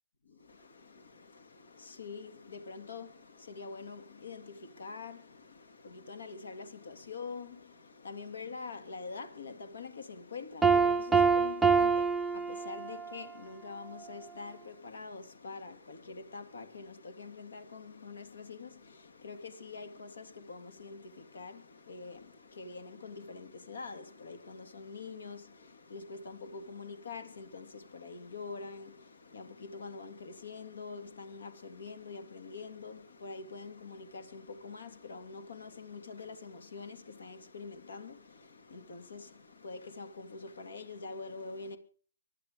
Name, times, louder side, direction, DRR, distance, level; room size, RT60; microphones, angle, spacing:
voice 1, 0.2-41.8, left 4 dB, 65° left, 2.7 m, -45 dB
Piano, 10.6-13.2, right 5 dB, 5° right, 0.6 m, -26 dB
24.5 x 11.5 x 3.8 m
figure-of-eight pair, 140°, 0 cm